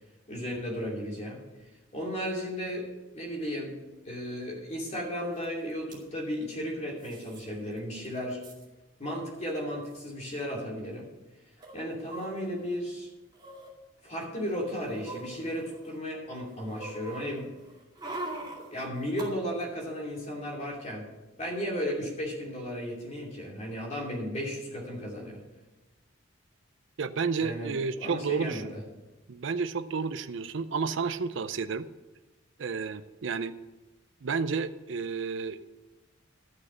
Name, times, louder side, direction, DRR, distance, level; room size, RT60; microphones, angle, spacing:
voice 1, 0.3-1.4 1.9-2.9 3.1-3.8 4.0-8.4 9.0-11.1 11.7-13.1 14.0-17.5 18.7-21.1 21.4-25.4 27.4-28.8, equal, 35° left, -1 dB, 2.8 m, -34 dB
sound 1, 5.4-5.5 5.7-6.0 7.0-7.4 7.8-7.9 8.0-8.6 9.5-9.6 9.8-10.0 11.6-12.7 13.3-13.7 14.3-16.0 16.3-19.3 19.6-19.7, right 2 dB, 20° right, 2.4 m, -43 dB
voice 2, 27.0-28.6 29.3-31.9 32.6-33.5 34.2-35.6, right 5 dB, 65° right, 11 dB, 0.5 m, -31 dB
12.5 x 6.5 x 6.9 m, 1.1 s
head